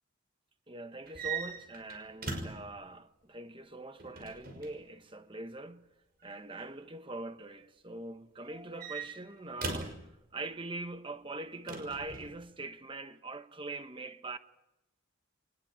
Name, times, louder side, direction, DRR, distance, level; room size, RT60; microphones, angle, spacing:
voice 1, 0.7-5.9 6.2-9.9 10.3-14.4, right 2 dB, 25° right, 1.2 m, -42 dB
sound 1, 1.1-2.7 4.0-4.8 6.2-6.6 8.4-10.0 11.7-12.3, right 4 dB, 45° right, 6.0 m, -40 dB
23.5 x 20.0 x 8.9 m
head